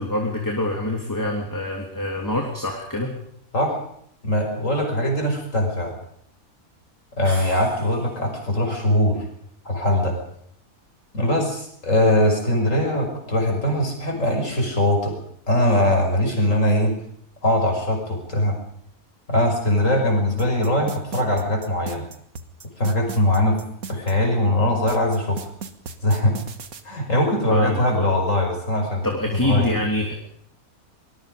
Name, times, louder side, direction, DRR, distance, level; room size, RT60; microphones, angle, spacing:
voice 1, 0.0-3.1 27.5-28.1 29.0-30.1, left 1 dB, 10° left, 0 dB, 3.2 m, -25 dB
voice 2, 4.2-5.9 7.2-9.2 9.6-10.2 11.1-15.2 15.5-16.9 17.4-18.6 19.3-22.0 22.8-23.6 23.9-25.5 26.0-26.4 26.8-29.1 29.4-29.8, left 1 dB, 55° left, 3 dB, 6.1 m, -21 dB
sound 1, 7.2-8.3, right 1 dB, 45° right, 8.2 m, -40 dB
sound 2, 20.4-24.1 24.9-26.8, right 5 dB, 75° right, 2.0 m, -36 dB
25.0 x 21.0 x 5.3 m, 0.66 s
omnidirectional pair, 1.6 m